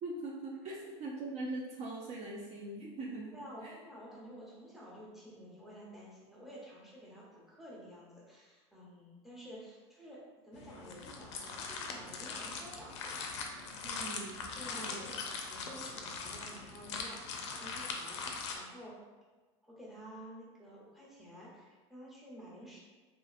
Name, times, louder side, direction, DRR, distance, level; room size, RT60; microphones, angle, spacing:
voice 1, 0.0-3.7 13.8-14.5 14.7-15.1, right 2 dB, 45° right, -3 dB, 0.5 m, -42 dB
voice 2, 3.3-13.2 14.6-18.9 19.6-22.8, equal, ahead, -6 dB, 0.9 m, -51 dB
sound 1, 10.5-18.6, left 4 dB, 85° left, 0.4 m, -41 dB
2.8 x 2.5 x 2.4 m, 1.3 s
supercardioid pair, 100°, 15 cm